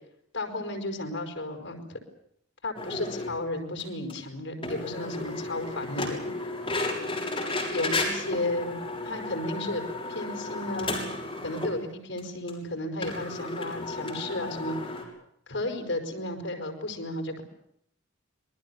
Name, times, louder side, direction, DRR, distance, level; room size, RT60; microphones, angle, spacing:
voice 1, 0.3-2.0 2.6-6.6 7.7-8.8 9.0-9.8 10.1-11.1 11.4-15.0 15.5-17.4, left 1 dB, 70° left, 4 dB, 5.4 m, -33 dB
sound 1, 2.7-3.4 3.8-3.9 4.1-4.2 4.6-11.8 12.2-12.3 12.5-12.6 13.0-15.0, left 2 dB, 25° left, 7.0 m, -33 dB
27.0 x 21.5 x 7.2 m, 0.72 s
head